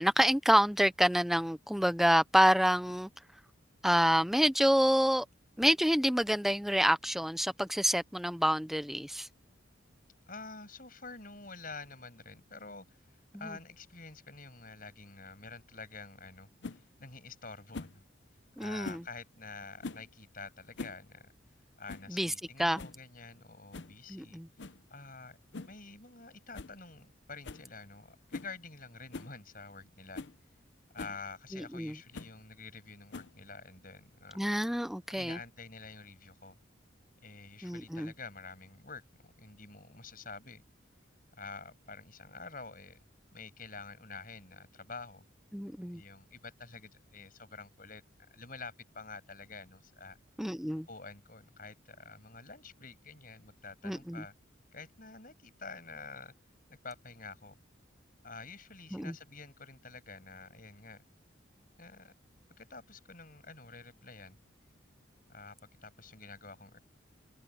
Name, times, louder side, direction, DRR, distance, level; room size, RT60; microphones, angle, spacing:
voice 1, 0.0-3.1 3.8-5.2 5.6-9.3 13.4-13.5 18.6-19.0 22.1-22.3 22.6-22.8 24.1-24.5 31.5-31.9 34.4-35.4 37.6-38.1 45.5-46.0 50.4-50.9 53.8-54.2 58.9-59.1, equal, ahead, 0.6 m, -27 dB
voice 2, 10.3-18.0 18.6-21.3 21.8-25.4 25.7-30.2 30.9-34.4 35.1-36.6 37.2-40.6 41.4-43.0 43.3-45.2 45.9-48.0 48.3-50.2 50.9-54.3 54.7-56.3 56.7-57.6 58.2-61.0 61.8-62.1 62.6-64.4 65.3-65.6 65.8-66.8, left 4 dB, 45° left, 6.7 m, -48 dB
sound 1, 16.6-16.8 17.7-18.0 18.8-19.1 19.8-20.1 20.6-21.0 21.3-21.4 21.9-22.1 22.5-22.6 22.8-23.0 23.7-24.0 24.6-24.8 25.5-25.8 26.1-26.2 26.5-26.8 27.0-27.1 27.4-27.7 28.3-28.5 29.1-29.3 29.8-29.9 30.1-30.4 31.0-31.2 32.1-32.4 33.1-33.5, left 3 dB, 60° left, 0.8 m, -43 dB
head